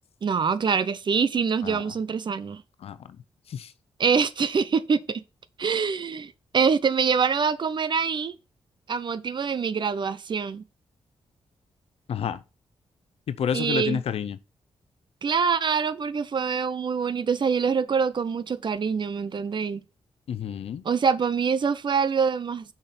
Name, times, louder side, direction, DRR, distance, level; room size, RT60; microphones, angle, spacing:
voice 1, 0.2-2.6 4.0-5.2 5.6-8.3 8.9-10.6 13.5-14.0 15.2-19.8 20.8-22.6, right 6 dB, 45° right, 0.6 m, -25 dB
voice 2, 12.1-12.4 13.3-14.4 20.3-20.8, left 8 dB, 70° left, 0.6 m, -29 dB
6.4 x 6.0 x 4.3 m
cardioid pair, 85°, 11 cm